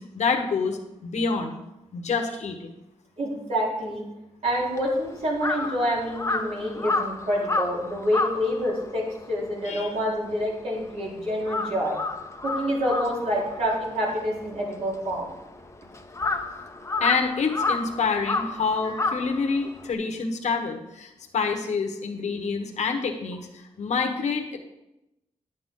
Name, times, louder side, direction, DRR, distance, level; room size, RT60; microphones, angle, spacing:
voice 1, 0.0-1.6 1.9-2.7 9.6-10.0 17.0-24.6, left 5 dB, 70° left, 3 dB, 1.2 m, -27 dB
voice 2, 3.2-4.0 4.4-12.0 12.4-15.3 18.8-19.0, equal, 60° right, -5 dB, 3.6 m, -27 dB
Crow, 4.5-11.0 11.3-19.9, left 3 dB, 25° left, 0.7 m, -31 dB
10.5 x 7.9 x 3.8 m, 0.92 s
cardioid pair, 90°, 12 cm